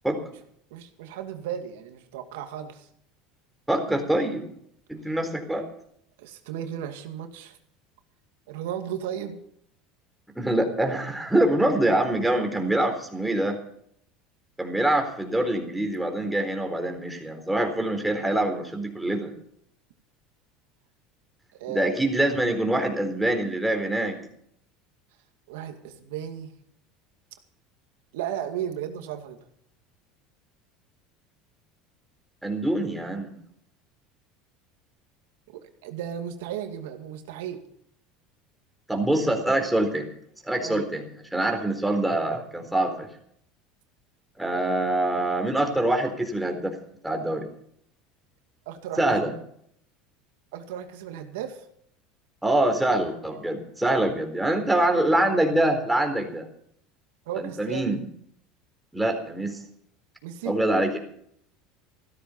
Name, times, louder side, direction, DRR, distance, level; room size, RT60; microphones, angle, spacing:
voice 1, 0.7-2.9 6.2-7.6 8.5-9.4 21.5-22.0 25.5-26.5 28.1-29.4 35.5-37.6 40.6-40.8 48.7-49.0 50.5-51.6 57.3-57.9 60.2-60.6, right 10 dB, 80° right, 6 dB, 2.2 m, -35 dB
voice 2, 3.7-4.5 4.9-5.6 10.4-13.6 14.6-19.3 21.7-24.2 32.4-33.3 38.9-40.1 40.4-41.0 41.3-43.1 44.4-46.8 47.0-47.5 49.0-49.3 52.4-56.5 57.4-58.0 58.9-59.6 60.5-61.0, right 1 dB, 5° right, 4 dB, 4.0 m, -25 dB
15.5 x 13.0 x 5.7 m, 0.68 s
supercardioid pair, 95°, 0 cm